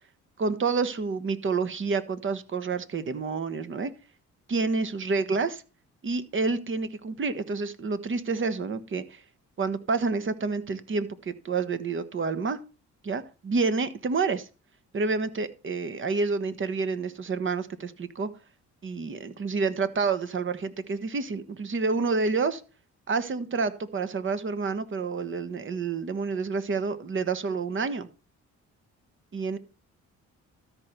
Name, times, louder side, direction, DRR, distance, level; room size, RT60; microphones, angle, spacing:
voice 1, 0.4-3.9 4.5-5.6 6.0-9.2 9.6-12.6 13.0-14.5 14.9-18.3 18.8-22.6 23.1-28.1 29.3-29.6, right 4 dB, 40° right, 13 dB, 1.2 m, -28 dB
13.0 x 4.6 x 6.6 m, 0.34 s
cardioid pair, 90°, 30 cm